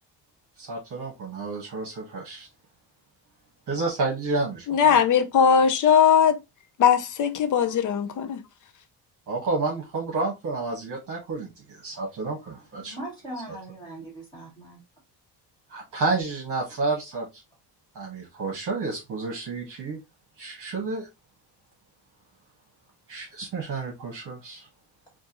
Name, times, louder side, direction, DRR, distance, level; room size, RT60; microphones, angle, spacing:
voice 1, 0.6-2.5 3.7-4.6 9.3-13.0 15.7-17.3 17.9-20.0 20.4-21.1 23.1-24.7, right 3 dB, 45° right, 1.4 m, -30 dB
voice 2, 4.7-6.4 6.8-8.4, left 7 dB, 45° left, 0.5 m, -19 dB
voice 3, 12.7-14.8, right 1 dB, 10° left, 2.0 m, -39 dB
4.6 x 2.6 x 2.9 m
cardioid pair, 150°, 42 cm